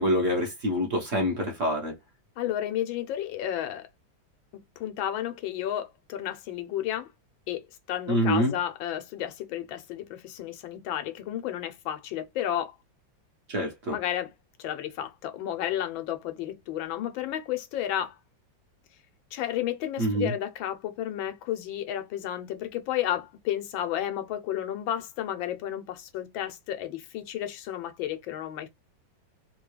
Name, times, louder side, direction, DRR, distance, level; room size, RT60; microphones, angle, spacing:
voice 1, 0.0-1.9 8.1-8.5 13.5-14.0 20.0-20.3, equal, 50° right, 1.1 m, -26 dB
voice 2, 2.4-3.9 4.5-7.1 7.5-12.7 13.9-14.3 14.6-18.2 19.3-28.7, left 11 dB, 85° left, 1.5 m, -32 dB
3.5 x 2.2 x 3.1 m
omnidirectional pair, 2.1 m